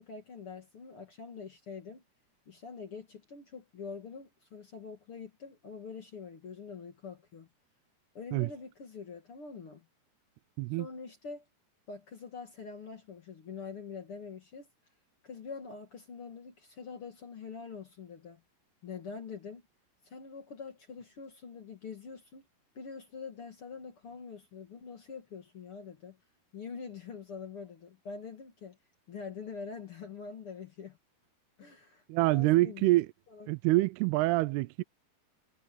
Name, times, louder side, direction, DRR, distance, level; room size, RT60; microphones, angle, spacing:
voice 1, 0.0-2.0 2.5-7.5 8.1-9.9 10.8-11.4 11.9-14.7 15.2-18.4 18.8-19.6 20.0-22.5 22.7-26.2 26.5-28.8 29.1-31.0 31.6-32.9 33.3-33.5, left 5 dB, 45° left, 2.1 m, -45 dB
voice 2, 32.1-33.1 33.5-34.8, right 19 dB, 80° right, 2.5 m, -26 dB
omnidirectional pair, 4.7 m